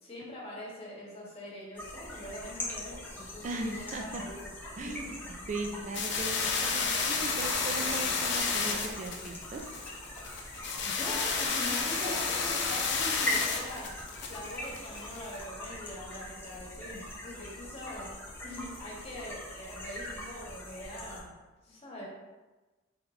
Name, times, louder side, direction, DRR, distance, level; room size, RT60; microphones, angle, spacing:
voice 1, 0.0-4.5 4.8-5.1 5.8-5.9 10.3-10.6 10.8-18.1 18.4-21.3 21.6-22.1, left 1 dB, 30° left, -5 dB, 1.2 m, -43 dB
sound 1, 1.8-21.2, left 1 dB, 10° left, 0.8 m, -42 dB
voice 2, 3.4-4.2 4.8-5.1 5.5-9.6, right 2 dB, 40° right, 3 dB, 0.4 m, -38 dB
sound 2, 5.9-15.4, left 5 dB, 60° left, 0.6 m, -31 dB
4.1 x 3.9 x 2.6 m, 1.2 s
head